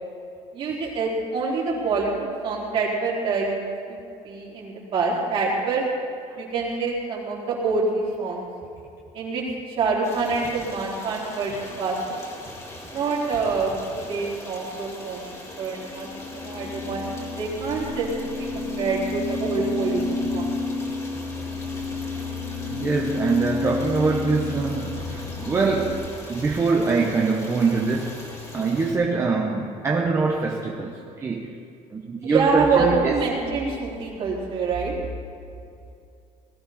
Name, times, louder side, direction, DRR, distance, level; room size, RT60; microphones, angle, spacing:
voice 1, 0.5-4.0 4.2-5.8 6.4-8.5 9.1-12.2 12.9-16.1 16.3-18.1 18.3-20.5 32.2-34.9, right 4 dB, 45° right, -4 dB, 3.9 m, -26 dB
Stream, 10.0-28.9, left 1 dB, 20° left, 2.2 m, -41 dB
sound 1, 15.8-25.9, left 3 dB, ahead, 1.1 m, -31 dB
voice 2, 22.7-31.5 31.9-33.2, right 4 dB, 20° right, -1 dB, 1.0 m, -24 dB
20.0 x 14.0 x 4.3 m, 2.5 s
cardioid pair, 170°, 13 cm